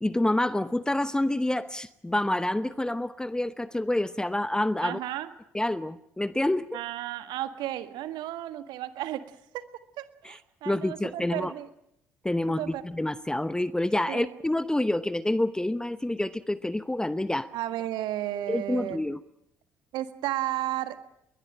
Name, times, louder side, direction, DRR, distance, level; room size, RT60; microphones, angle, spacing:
voice 1, 0.0-5.0 5.5-6.6 10.2-10.4 10.7-11.5 12.2-17.5 18.5-19.2, left 1 dB, 10° left, 15 dB, 0.9 m, -27 dB
voice 2, 4.8-5.3 6.7-9.6 10.0-11.7 12.6-12.8 14.1-14.4 17.5-19.0 19.9-21.0, right 13 dB, 60° right, 11 dB, 1.6 m, -33 dB
21.5 x 21.0 x 8.9 m, 0.79 s
figure-of-eight pair, 50°, 8 cm